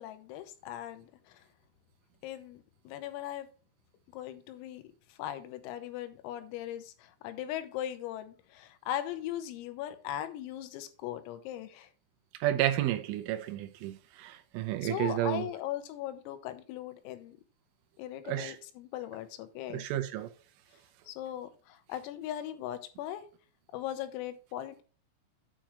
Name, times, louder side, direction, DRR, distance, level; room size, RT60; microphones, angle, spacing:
voice 1, 0.0-1.4 2.2-3.5 4.1-4.8 5.1-11.9 14.8-17.4 18.0-19.9 21.1-23.3 23.7-24.8, left 12 dB, 85° left, 3.7 m, -39 dB
voice 2, 12.4-15.5 18.3-18.6 19.7-20.3, right 13 dB, 80° right, 3.2 m, -31 dB
9.1 x 4.3 x 6.2 m
omnidirectional pair, 5.9 m